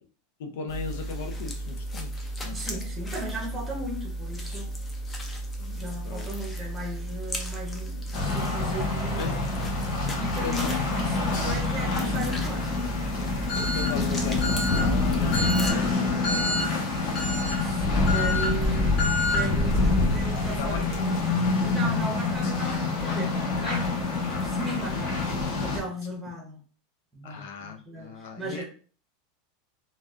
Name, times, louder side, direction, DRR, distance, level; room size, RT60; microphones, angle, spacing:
voice 1, 0.4-2.1 2.4-2.6 5.6-6.3 9.2-9.5 10.4-10.7 13.6-16.7 20.6-21.1 22.0-22.1 27.2-28.6, left 5 dB, 65° left, 5 dB, 0.6 m, -37 dB
sound 1, 0.7-15.7, right 1 dB, 15° left, 0.5 m, -35 dB
voice 2, 2.5-4.7 5.7-9.4 10.2-12.9 17.3-21.2 21.6-23.3 23.6-26.6 27.1-28.6, right 1 dB, 5° right, -2 dB, 0.8 m, -37 dB
sound 2, 8.1-25.8, left 3 dB, 40° left, 1.0 m, -26 dB
3.9 x 2.3 x 2.4 m, 0.41 s
supercardioid pair, 170°, 0 cm